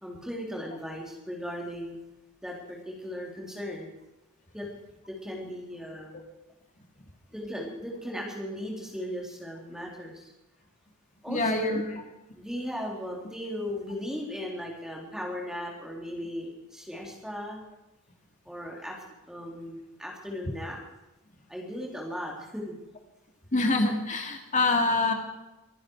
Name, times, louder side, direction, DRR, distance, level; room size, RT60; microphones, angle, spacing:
voice 1, 0.0-2.0 2.4-3.9 4.5-4.7 5.1-6.2 7.3-10.3 11.2-11.8 12.3-17.6 18.5-19.0 19.3-20.8 21.5-22.7, equal, 5° right, -1 dB, 3.8 m, -37 dB
voice 2, 11.3-11.8 23.5-25.1, left 2 dB, 35° left, 3 dB, 2.6 m, -25 dB
24.5 x 11.0 x 4.8 m, 1.0 s
head